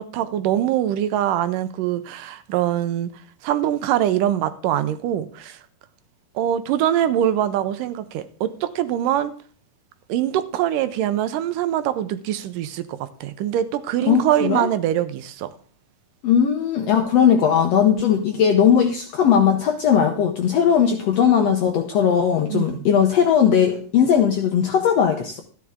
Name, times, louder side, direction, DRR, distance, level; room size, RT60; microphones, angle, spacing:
voice 1, 0.0-3.1 3.4-5.6 6.4-9.3 10.1-15.5 22.5-22.8, right 11 dB, 80° right, 2.3 m, -23 dB
voice 2, 14.1-14.7 16.2-25.4, left 8 dB, 70° left, 1.6 m, -18 dB
13.0 x 9.8 x 3.6 m
omnidirectional pair, 3.9 m